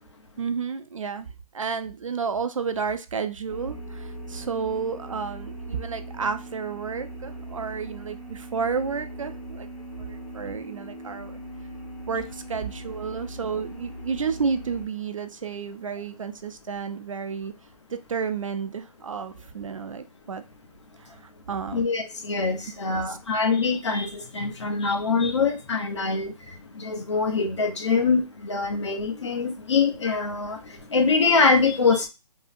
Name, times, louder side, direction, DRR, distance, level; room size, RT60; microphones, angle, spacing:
voice 1, 0.4-1.3 1.5-9.7 10.0-11.4 12.1-17.5 17.9-20.4 21.0-21.8 22.9-23.2, right 5 dB, 55° right, 0.4 m, -31 dB
sound 1, 3.5-14.9, right 1 dB, 65° left, 1.8 m, -40 dB
voice 2, 21.7-32.1, left 4 dB, 45° left, 0.7 m, -24 dB
3.7 x 2.0 x 2.5 m
hypercardioid pair, 175°, 20 cm